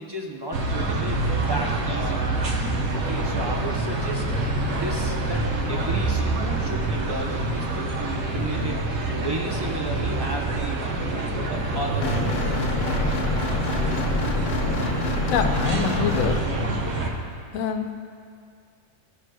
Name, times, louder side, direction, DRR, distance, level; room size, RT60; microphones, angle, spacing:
voice 1, 0.0-2.3 2.9-4.3 4.7-12.6, right 1 dB, 35° right, 0 dB, 0.4 m, -34 dB
sound 1, 0.5-17.1, right 2 dB, 60° right, 1.0 m, -26 dB
sound 2, 12.0-16.4, left 4 dB, 60° left, 0.7 m, -27 dB
voice 2, 15.3-16.4 17.5-17.9, left 6 dB, 85° left, 6 dB, 1.0 m, -25 dB
14.5 x 6.2 x 2.2 m, 2.2 s
omnidirectional pair, 1.4 m